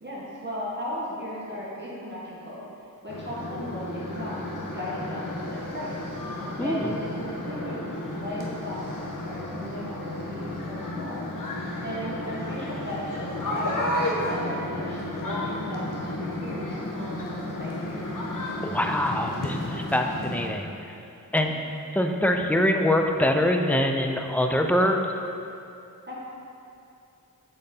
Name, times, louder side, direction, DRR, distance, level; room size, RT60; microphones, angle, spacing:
voice 1, 0.0-2.7 3.0-5.9 6.6-11.3 11.8-13.0 13.5-18.1 26.1-26.2, equal, 30° right, -7 dB, 1.4 m, -36 dB
sound 1, 3.1-20.5, left 1 dB, 60° left, 1.1 m, -32 dB
voice 2, 6.6-6.9 18.6-21.0 21.3-21.6 21.9-25.1, left 1 dB, 5° left, 3 dB, 0.5 m, -24 dB
7.7 x 4.1 x 3.8 m, 2.7 s
cardioid pair, 45°, 36 cm